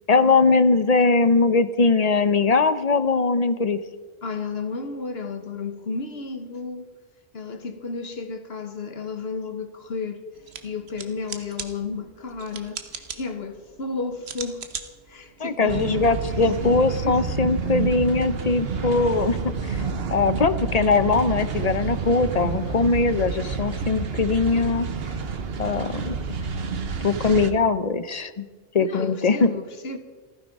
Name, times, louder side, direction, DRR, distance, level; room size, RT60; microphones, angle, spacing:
voice 1, 0.1-3.8 15.4-19.4 19.6-19.8 20.1-24.9 25.6-26.2 27.0-28.5 28.7-29.5, left 4 dB, 45° left, 0.7 m, -21 dB
voice 2, 4.2-6.9 7.3-10.2 10.6-14.7 15.1-17.2 28.8-30.0, left 4 dB, 75° left, 1.5 m, -33 dB
sound 1, 10.4-16.5, right 6 dB, 90° right, 1.3 m, -40 dB
sound 2, 15.7-27.5, right 5 dB, 70° right, 1.3 m, -29 dB
15.0 x 14.0 x 5.3 m
omnidirectional pair, 1.0 m